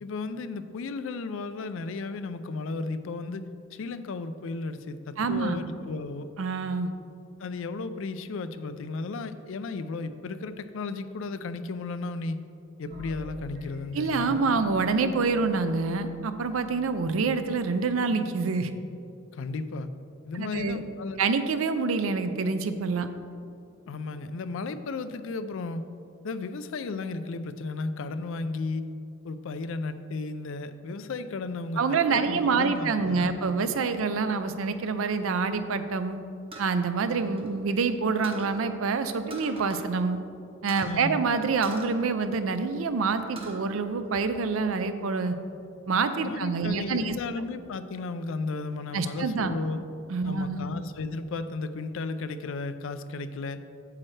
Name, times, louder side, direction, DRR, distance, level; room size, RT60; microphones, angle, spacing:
voice 1, 0.0-6.3 7.4-12.4 12.8-14.4 19.3-19.9 20.2-21.2 23.9-25.8 26.2-28.9 29.2-33.3 40.9-41.2 46.2-49.8 50.2-53.6, left 3 dB, 70° left, 11 dB, 0.4 m, -34 dB
voice 2, 5.2-5.6 6.4-6.9 13.9-18.7 20.3-20.8 21.2-23.1 31.8-36.2 36.6-40.2 40.6-45.4 45.9-47.1 48.9-49.5 50.1-50.6, right 4 dB, 75° right, 10 dB, 0.5 m, -26 dB
sound 1, 12.9-17.5, left 3 dB, 45° right, 1.6 m, -44 dB
sound 2, 36.5-37.9 38.2-38.6 39.3-39.9 40.2-40.3 40.7-41.0 41.6-42.7 43.1-43.6 44.0-44.8, right 2 dB, 30° right, 0.9 m, -44 dB
8.5 x 7.5 x 3.2 m, 2.6 s
head